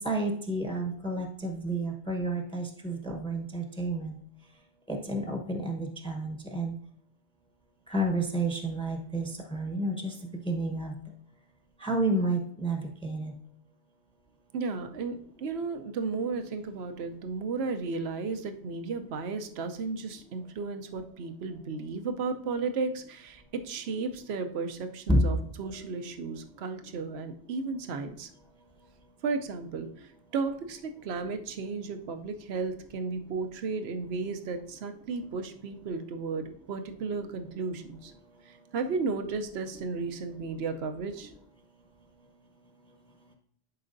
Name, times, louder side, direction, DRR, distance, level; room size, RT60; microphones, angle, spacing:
voice 1, 0.0-4.1 4.9-6.7 7.9-10.1 10.5-10.9 11.8-13.3 25.1-25.2, right 1 dB, 5° left, 3 dB, 0.9 m, -30 dB
voice 2, 14.5-28.3 29.2-38.1 38.4-41.3, right 4 dB, 70° right, 7 dB, 1.0 m, -34 dB
11.0 x 4.8 x 2.6 m, 0.65 s
omnidirectional pair, 1.1 m